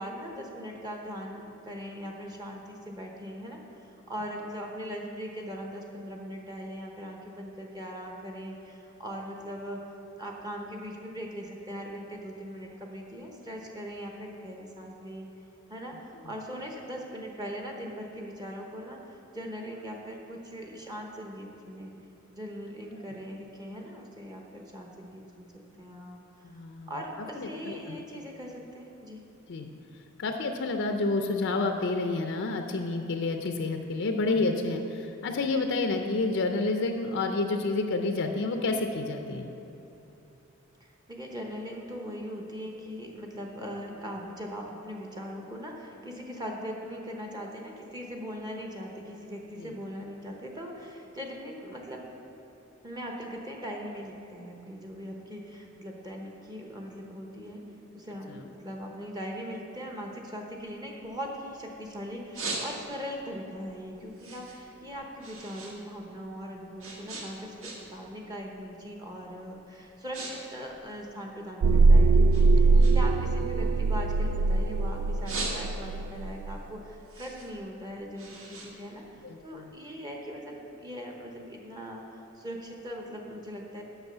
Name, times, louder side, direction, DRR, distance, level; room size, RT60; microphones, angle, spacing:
voice 1, 0.0-3.6 4.1-9.8 10.2-15.3 15.7-21.9 22.4-25.5 25.8-29.2 40.8-52.1 52.8-57.6 57.9-83.8, equal, 20° right, 0 dB, 0.9 m, -40 dB
voice 2, 26.4-26.9 27.4-28.0 29.5-29.7 30.2-39.5 79.2-79.4, left 3 dB, 65° left, 5 dB, 0.5 m, -29 dB
sound 1, 60.6-61.7 62.1-63.1 63.6-65.8 66.0-68.1 68.4-68.7 69.3-69.5 69.8-70.3 70.6-71.8 72.3-74.6 75.0-76.1 76.5-79.6, right 3 dB, 70° right, 1.5 m, -40 dB
sound 2, 71.6-76.6, right 3 dB, 90° right, 0.3 m, -22 dB
8.1 x 6.1 x 6.7 m, 2.9 s
head